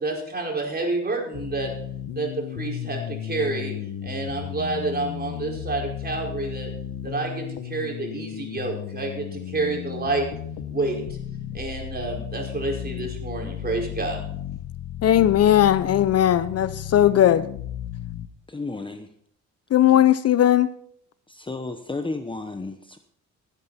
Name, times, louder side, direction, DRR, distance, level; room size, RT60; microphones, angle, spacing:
voice 1, 0.0-1.7 2.1-3.7 4.0-6.7 7.0-10.3 10.7-11.0 11.5-14.2, right 3 dB, 30° right, 4.9 m, -29 dB
sound 1, 1.3-18.3, left 10 dB, 85° left, 1.0 m, -34 dB
voice 2, 15.0-17.5 19.7-20.7, left 11 dB, 55° left, 0.6 m, -18 dB
voice 3, 18.5-19.1 21.3-23.0, left 3 dB, 15° left, 0.9 m, -32 dB
16.5 x 9.9 x 4.2 m
cardioid pair, 90°, 30 cm